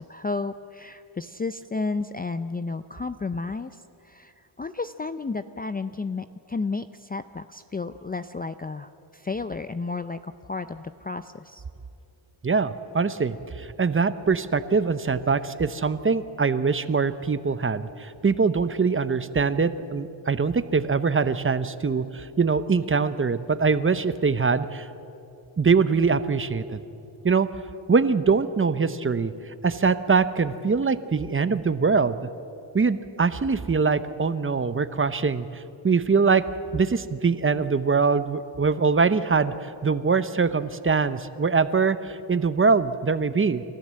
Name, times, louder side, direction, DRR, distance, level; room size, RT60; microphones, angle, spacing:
voice 1, 0.0-3.7 4.0-4.3 4.6-11.6, left 3 dB, 20° left, 11 dB, 0.5 m, -32 dB
voice 2, 12.4-24.9 25.6-26.8 27.2-27.5 27.9-29.3 29.6-32.2 32.7-36.4 36.7-43.6, right 5 dB, 25° right, 13 dB, 0.8 m, -23 dB
29.5 x 13.5 x 7.6 m, 2.7 s
cardioid pair, 90°, 49 cm